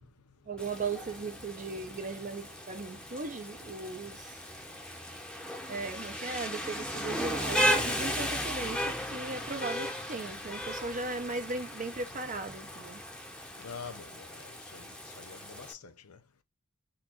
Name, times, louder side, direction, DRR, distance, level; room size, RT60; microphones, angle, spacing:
voice 1, 0.5-4.3 5.7-13.0, right 3 dB, 35° right, 0.7 m, -37 dB
Rain, 0.6-15.7, equal, 5° left, 0.8 m, -36 dB
voice 2, 13.6-16.2, left 6 dB, 85° left, 0.8 m, -47 dB
4.0 x 2.6 x 4.5 m
head